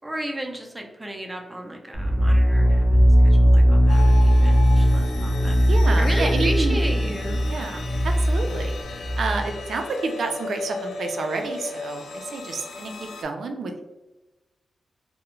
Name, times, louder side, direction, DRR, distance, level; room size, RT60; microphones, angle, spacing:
voice 1, 0.0-5.6 6.0-7.4, right 1 dB, 15° right, 1 dB, 0.4 m, -33 dB
sound 1, 1.9-9.6, equal, 40° left, 0.6 m, -18 dB
sound 2, 3.9-13.2, left 4 dB, 85° left, 0.4 m, -37 dB
voice 2, 5.7-6.8 7.5-7.8 8.3-8.7 9.2-13.8, right 3 dB, 75° right, 4 dB, 0.4 m, -29 dB
2.3 x 2.1 x 3.0 m, 1.1 s
wide cardioid pair, 130°, 0 cm